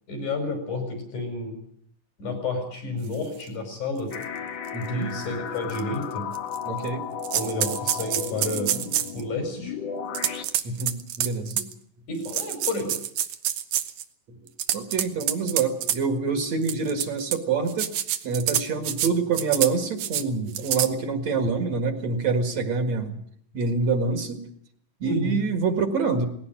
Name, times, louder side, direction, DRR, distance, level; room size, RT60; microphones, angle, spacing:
voice 1, 0.1-1.5 2.2-4.1 4.9-6.3 7.3-8.8 9.1-9.8 12.1-12.9 25.0-25.4, left 2 dB, 80° left, 5 dB, 6.5 m, -30 dB
sound 1, 3.4-3.5 4.1-4.2 4.7-4.8 5.7-5.8 6.3-6.9 7.2-9.2 10.1-11.7 12.2-14.0 14.5-16.0 16.6-17.4 17.7-19.1 19.3-19.7 20.0-20.2 20.5-20.9, right 11 dB, 85° right, 2.6 m, -27 dB
sound 2, 4.1-10.4, left 7 dB, 60° left, 2.5 m, -34 dB
voice 2, 4.7-5.1 6.7-7.0 10.6-11.7 14.7-17.9 18.2-23.2 23.5-24.4 25.0-26.3, right 4 dB, 60° right, 6 dB, 3.0 m, -26 dB
19.5 x 17.0 x 9.0 m, 0.65 s
omnidirectional pair, 3.4 m